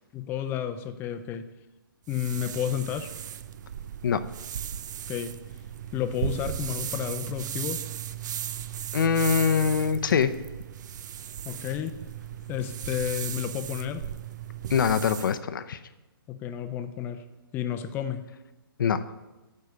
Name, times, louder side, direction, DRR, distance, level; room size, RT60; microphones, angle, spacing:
voice 1, 0.1-1.5 2.1-3.1 5.1-5.4 5.9-7.8 11.4-12.0 12.5-14.1 16.3-17.2 17.5-18.2, left 10 dB, 15° left, 9 dB, 0.6 m, -31 dB
sound 1, 2.1-15.4, right 10 dB, 50° right, 0.5 m, -36 dB
voice 2, 8.9-10.3 14.7-15.8 18.8-19.0, left 6 dB, 60° left, 11 dB, 0.7 m, -23 dB
13.0 x 4.7 x 6.7 m, 1.1 s
hypercardioid pair, 145°, 12 cm